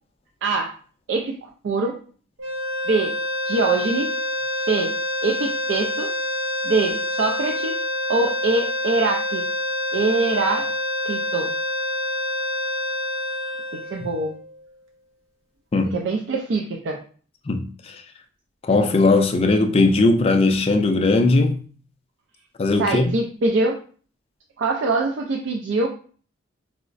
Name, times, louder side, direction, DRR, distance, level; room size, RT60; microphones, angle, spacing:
voice 1, 0.4-0.7 1.1-2.0 2.9-3.1 3.5-4.1 4.7-4.9 5.2-6.1 6.6-7.8 8.1-9.4 9.9-10.7 11.0-11.5 13.7-14.4 15.9-17.0 22.8-23.8 24.6-25.9, right 3 dB, 65° right, 0.3 m, -23 dB
sound 1, 2.4-14.6, left 1 dB, 90° right, 0.7 m, -27 dB
voice 2, 15.7-16.0 17.5-18.0 18.6-21.6 22.6-23.1, left 3 dB, 30° left, 0.3 m, -18 dB
4.6 x 2.0 x 2.4 m
head